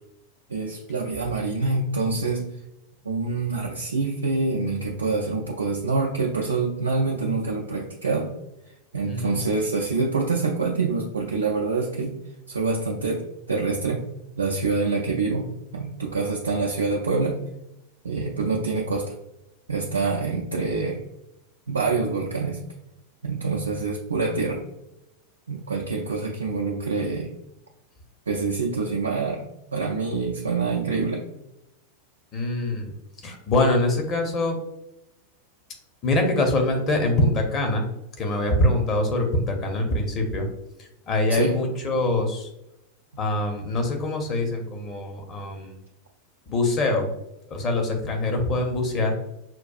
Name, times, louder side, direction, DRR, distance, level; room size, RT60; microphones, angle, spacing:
voice 1, 0.5-2.5 3.0-8.3 8.9-12.2 12.5-14.0 14.4-17.4 18.0-19.1 19.7-21.0 21.7-22.6 23.2-24.6 25.5-27.3 28.3-31.2 41.3-41.6, right 4 dB, 70° right, -1 dB, 0.4 m, -26 dB
voice 2, 9.0-9.5 32.3-32.9 33.2-34.6 36.0-37.9 38.2-40.5 40.8-42.5 43.2-45.8 46.5-47.1 47.5-49.2, left 2 dB, 30° left, 3 dB, 0.8 m, -24 dB
5.8 x 2.3 x 2.4 m, 0.87 s
figure-of-eight pair, 90°, 0 cm